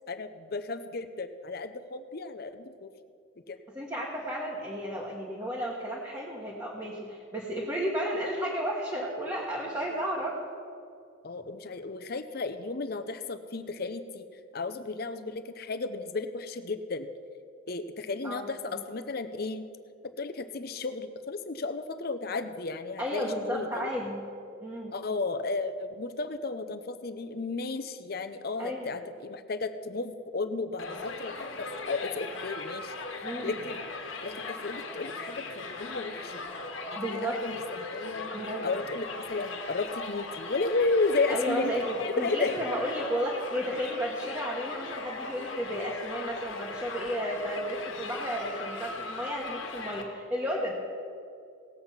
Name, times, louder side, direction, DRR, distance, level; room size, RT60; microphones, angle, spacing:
voice 1, 0.1-2.9 3.5-3.6 11.2-14.3 14.5-17.1 17.7-19.6 20.2-23.9 24.9-32.9 33.4-33.8 34.2-36.4 37.0-38.3 38.6-41.7 42.0-42.6, left 3 dB, 50° left, 10 dB, 0.6 m, -33 dB
voice 2, 3.7-10.4 18.2-18.8 23.0-24.2 24.6-24.9 28.6-29.0 33.2-33.5 36.9-37.4 38.3-38.7 41.3-50.7, equal, 15° right, -4 dB, 1.3 m, -33 dB
Crowd, 30.8-50.0, left 3 dB, 70° left, 1.4 m, -39 dB
18.0 x 7.8 x 5.6 m, 2.5 s
head